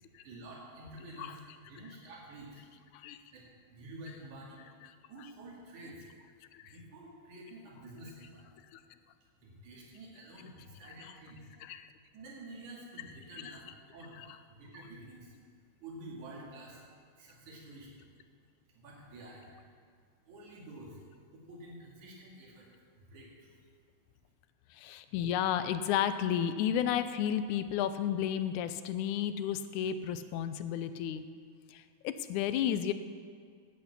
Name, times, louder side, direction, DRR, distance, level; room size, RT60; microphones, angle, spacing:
voice 1, 0.2-2.6 3.3-3.4 3.7-4.7 5.1-6.1 6.6-8.5 9.4-11.5 12.1-13.7 13.9-14.2 14.5-15.3 15.8-16.8 17.2-17.9 18.7-19.5 20.3-21.0 21.3-22.7 23.0-23.6, right 1 dB, 80° right, -3 dB, 3.6 m, -49 dB
voice 2, 24.7-31.2 31.7-32.9, left 9 dB, 90° left, 11 dB, 2.1 m, -32 dB
10.0 x 8.1 x 8.2 m, 2.1 s
omnidirectional pair, 3.4 m